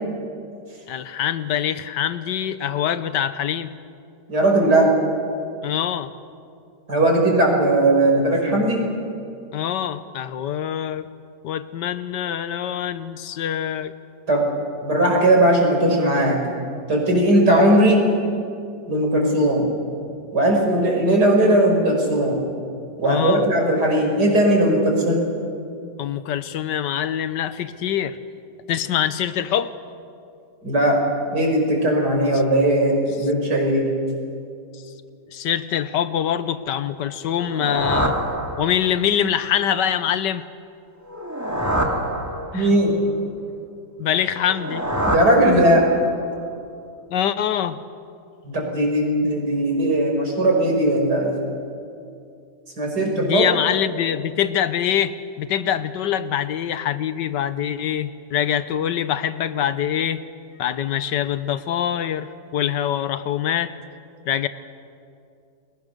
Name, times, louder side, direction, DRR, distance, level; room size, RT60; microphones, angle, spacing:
voice 1, 0.9-3.7 5.6-6.1 9.5-11.1 11.4-13.9 23.0-23.5 26.0-28.2 28.7-29.7 35.3-38.2 38.6-40.4 42.5-42.7 44.0-44.8 47.1-47.8 53.1-60.2 60.6-63.7 64.3-64.5, left 10 dB, 75° left, 13 dB, 1.5 m, -24 dB
voice 2, 4.3-5.0 6.9-8.9 14.3-14.5 14.8-16.4 16.9-18.0 18.9-19.7 20.3-22.4 23.0-25.2 30.6-31.0 31.3-33.9 42.5-43.0 45.1-45.9 48.4-51.3 52.8-53.5, right 1 dB, 65° right, 1 dB, 5.7 m, -18 dB
sound 1, 37.3-39.1 41.0-42.9 44.3-46.2, right 1 dB, 10° right, 2.3 m, -26 dB
30.0 x 21.5 x 6.7 m, 2.5 s
omnidirectional pair, 1.9 m